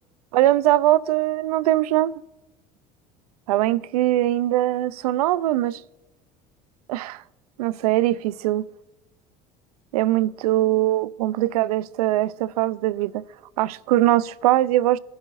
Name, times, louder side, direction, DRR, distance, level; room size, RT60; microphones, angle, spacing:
voice 1, 0.3-2.2 3.5-5.8 6.9-7.2 7.6-8.6 9.9-13.2 13.6-15.0, right 15 dB, 85° right, 0.5 m, -21 dB
22.5 x 11.0 x 2.5 m
hypercardioid pair, 80°, 19 cm